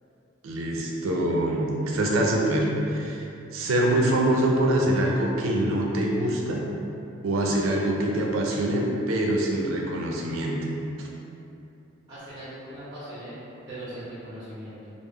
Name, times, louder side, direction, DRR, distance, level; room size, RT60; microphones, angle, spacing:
voice 1, 0.4-3.3 3.5-6.6 7.2-10.6, right 1 dB, 90° right, -2 dB, 0.4 m, -24 dB
voice 2, 12.1-13.4 13.7-14.8, right 1 dB, 20° right, -11 dB, 0.6 m, -39 dB
2.2 x 2.0 x 3.5 m, 2.7 s
head